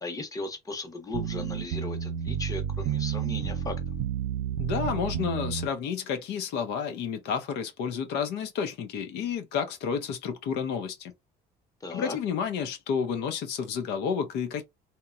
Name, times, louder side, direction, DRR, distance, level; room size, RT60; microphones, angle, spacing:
voice 1, 0.0-3.8 11.8-12.2, left 3 dB, 20° left, 0.8 m, -37 dB
sound 1, 1.1-5.7, right 9 dB, 90° right, 0.4 m, -31 dB
voice 2, 4.6-11.1 11.9-14.6, left 7 dB, 85° left, 0.6 m, -30 dB
2.9 x 2.1 x 2.3 m
cardioid pair, 110°, 17 cm